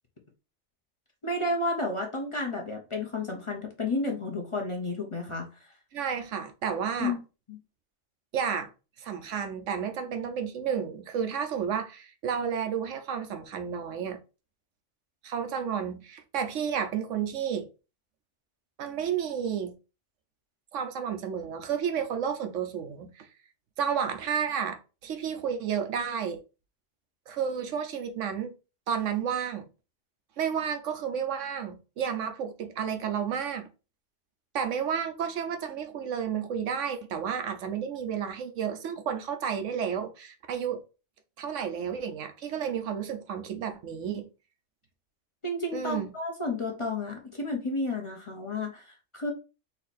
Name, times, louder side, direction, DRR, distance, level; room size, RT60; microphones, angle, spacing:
voice 1, 1.2-5.5 7.0-7.2 7.5-7.6 45.4-49.3, left 2 dB, 30° left, 0.9 m, -31 dB
voice 2, 5.9-7.1 8.3-8.7 9.0-14.2 15.2-17.7 18.8-19.7 20.7-23.3 23.8-26.4 27.3-28.5 28.9-29.7 30.4-33.7 34.5-40.8 41.4-44.3 45.7-46.1, right 7 dB, 80° right, 1.1 m, -31 dB
4.1 x 2.9 x 4.2 m
omnidirectional pair, 1.2 m